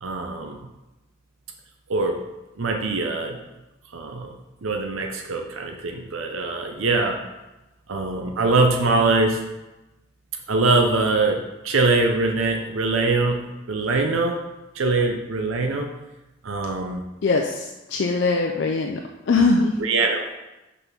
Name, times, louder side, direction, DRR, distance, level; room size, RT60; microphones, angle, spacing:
voice 1, 0.0-0.6 1.9-2.2 2.6-3.4 3.9-4.3 4.6-7.2 7.9-9.4 10.5-14.4 14.7-15.9 16.4-17.0 19.8-20.3, right 3 dB, 85° right, 3 dB, 0.7 m, -23 dB
voice 2, 17.2-19.8, left 3 dB, 60° left, 2 dB, 0.5 m, -22 dB
5.5 x 4.2 x 5.9 m, 1.0 s
head